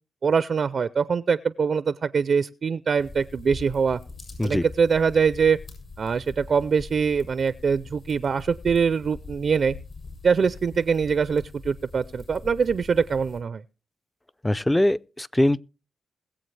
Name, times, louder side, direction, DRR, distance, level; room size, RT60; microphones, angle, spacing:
voice 1, 0.2-4.0 4.4-5.6 6.0-9.8 10.2-13.6, right 6 dB, 60° right, 0.5 m, -23 dB
sound 1, 3.0-13.4, left 3 dB, 50° left, 7.1 m, -42 dB
voice 2, 14.4-15.6, left 1 dB, 15° left, 0.4 m, -22 dB
21.5 x 7.6 x 3.3 m
cardioid pair, 65°, 0 cm